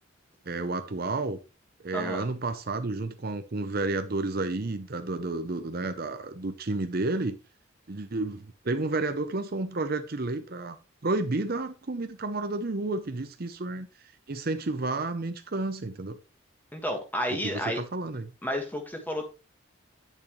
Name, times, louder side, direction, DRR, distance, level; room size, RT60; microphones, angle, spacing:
voice 1, 0.4-1.4 1.8-7.4 7.9-10.8 11.0-16.2 17.3-18.3, right 2 dB, 45° right, 0.7 m, -31 dB
voice 2, 1.9-2.3 16.7-17.8 18.4-19.3, equal, 10° left, 1.7 m, -31 dB
10.5 x 6.9 x 3.1 m
head